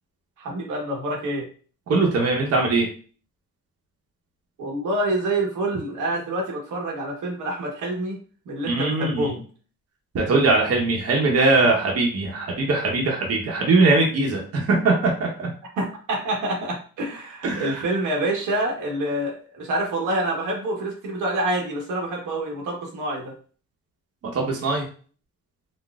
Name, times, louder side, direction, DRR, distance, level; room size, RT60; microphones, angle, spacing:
voice 1, 0.4-1.5 4.6-8.2 8.5-9.4 15.8-23.3, right 1 dB, 85° right, -1 dB, 1.1 m, -27 dB
voice 2, 1.9-2.9 8.6-9.3 10.1-15.5 17.4-17.8 24.3-24.8, right 3 dB, 55° right, 0 dB, 0.9 m, -21 dB
4.0 x 2.1 x 2.3 m, 0.41 s
cardioid pair, 90°, 30 cm